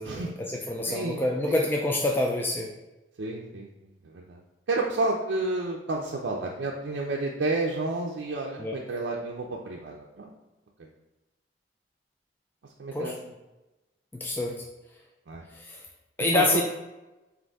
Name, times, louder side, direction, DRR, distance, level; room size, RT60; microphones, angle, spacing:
voice 1, 0.0-2.7 8.6-8.8 12.9-13.1 14.1-14.6 15.5-15.8 16.2-16.6, left 2 dB, 10° left, -1 dB, 0.3 m, -27 dB
voice 2, 0.9-1.6 3.2-4.4 4.7-10.3 10.8-10.9 12.8-13.1 15.3-15.4 16.3-16.6, right 2 dB, 90° right, -2 dB, 0.5 m, -31 dB
5.1 x 2.6 x 3.5 m, 1.0 s
head